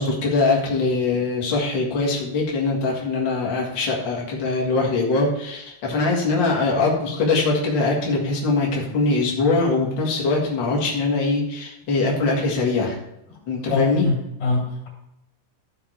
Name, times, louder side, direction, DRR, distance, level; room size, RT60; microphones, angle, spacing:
voice 1, 0.0-13.0 13.5-14.1, left 3 dB, 80° left, -2 dB, 1.0 m, -22 dB
voice 2, 13.7-14.9, left 4 dB, 35° left, -2 dB, 3.3 m, -23 dB
14.0 x 5.1 x 4.4 m, 0.86 s
omnidirectional pair, 5.3 m